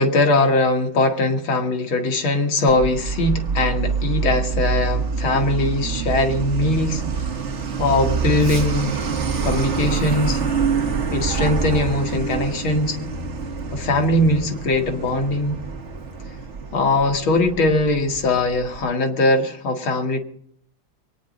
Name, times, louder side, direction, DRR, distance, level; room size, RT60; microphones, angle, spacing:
voice 1, 0.0-7.0 7.8-8.9 9.4-10.4 11.1-13.0 13.7-15.6 16.7-20.2, left 2 dB, 85° left, 4 dB, 2.7 m, -20 dB
Truck, 2.7-18.9, right 5 dB, 40° right, 1.4 m, -26 dB
23.5 x 9.8 x 5.2 m, 0.66 s
omnidirectional pair, 2.2 m